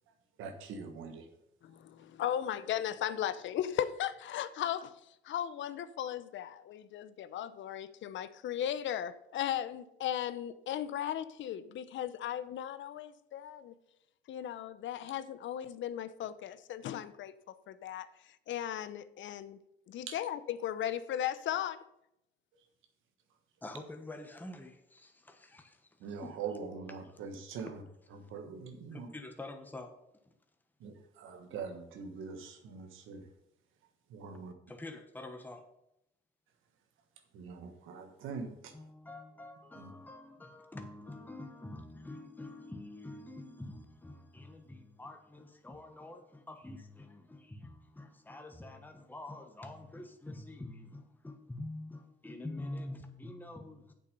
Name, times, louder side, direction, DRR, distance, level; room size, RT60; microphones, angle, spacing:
voice 1, 0.4-1.3 20.1-20.2 26.0-27.7 28.2-29.1 30.8-33.2 34.1-34.5 37.3-38.7 39.8-39.9, right 5 dB, 85° right, 1.4 m, -43 dB
voice 2, 1.6-5.0 5.2-13.7 14.3-17.3 17.7-19.6 19.9-21.8, left 10 dB, 75° left, 0.7 m, -36 dB
voice 3, 23.6-26.4 27.0-27.2 28.2-28.3 28.9-29.9 30.2-30.3 34.7-35.7 38.7-53.9, left 2 dB, 10° left, 1.1 m, -46 dB
8.2 x 7.1 x 5.3 m
cardioid pair, 90°, 20 cm